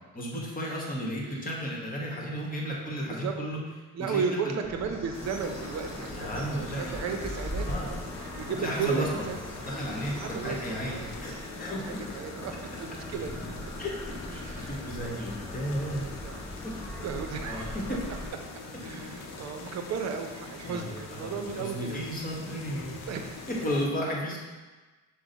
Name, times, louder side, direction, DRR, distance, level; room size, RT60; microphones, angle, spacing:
voice 1, 0.1-3.6 4.1-4.5 6.1-6.9 7.7-7.9 8.5-9.2 9.6-10.1 10.4-11.8 13.8-13.9 14.3-16.3 17.4-17.8 20.6-23.1 23.6-24.4, equal, 30° left, -2 dB, 1.2 m, -34 dB
voice 2, 3.9-9.4 10.2-10.6 10.8-11.2 11.8-12.5 12.8-13.3 14.3-15.3 16.2-16.4 17.0-17.7 18.8-22.0 23.1-23.4, right 6 dB, 60° right, 5 dB, 0.6 m, -35 dB
sound 1, 4.6-18.3, left 1 dB, 10° left, 0.8 m, -42 dB
Bird, 4.7-11.4, equal, 20° right, 1.2 m, -42 dB
sound 2, 5.1-23.9, left 3 dB, 60° left, 0.7 m, -43 dB
6.0 x 2.2 x 3.9 m, 1.3 s
cardioid pair, 90°, 30 cm